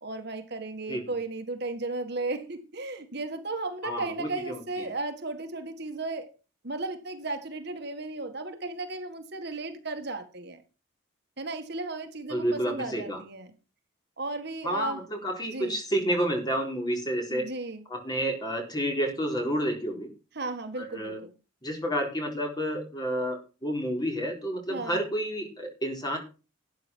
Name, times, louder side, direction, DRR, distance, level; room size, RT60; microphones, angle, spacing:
voice 1, 0.0-6.3 6.6-10.6 11.4-13.5 14.2-15.0 15.5-15.8 17.3-17.8 20.3-21.3 24.7-25.0, right 2 dB, 55° right, 6 dB, 1.8 m, -35 dB
voice 2, 3.8-4.6 12.3-13.2 14.6-17.5 17.9-20.1 20.8-21.2 21.6-26.2, equal, 20° left, 2 dB, 3.9 m, -30 dB
12.5 x 9.5 x 4.5 m, 0.33 s
head